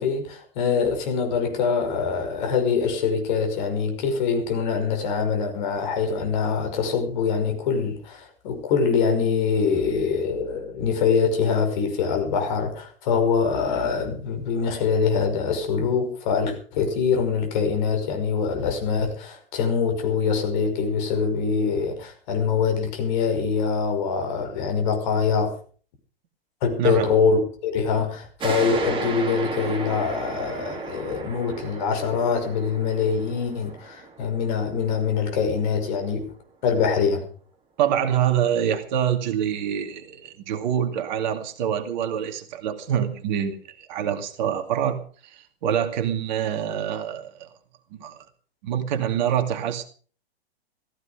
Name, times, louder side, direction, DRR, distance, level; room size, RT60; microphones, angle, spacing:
voice 1, 0.0-25.5 26.6-36.3 36.6-37.3, left 5 dB, 50° left, 5.5 m, -24 dB
voice 2, 26.8-27.1 37.8-47.5 48.0-48.2 48.6-49.8, right 9 dB, 45° right, 2.4 m, -26 dB
sound 1, 28.4-35.6, right 4 dB, 15° right, 2.9 m, -34 dB
15.5 x 15.0 x 5.3 m
figure-of-eight pair, 105°, 30 cm